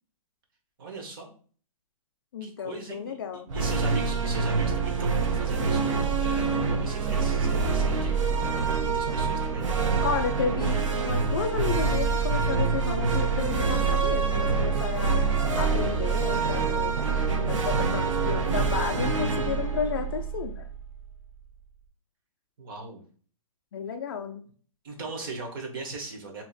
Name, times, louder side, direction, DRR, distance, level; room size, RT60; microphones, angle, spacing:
voice 1, 0.8-1.3 2.4-3.1 3.5-8.3 8.8-9.6 22.6-23.0 24.8-26.4, right 3 dB, 40° right, 2 dB, 1.0 m, -39 dB
voice 2, 2.3-3.5 10.0-15.2 15.5-17.0 17.4-20.7 23.7-24.4, left 6 dB, 40° left, 5 dB, 0.4 m, -32 dB
sound 1, 3.5-20.9, right 5 dB, 60° right, 0.7 m, -26 dB
2.8 x 2.5 x 3.9 m, 0.44 s
hypercardioid pair, 165°, 18 cm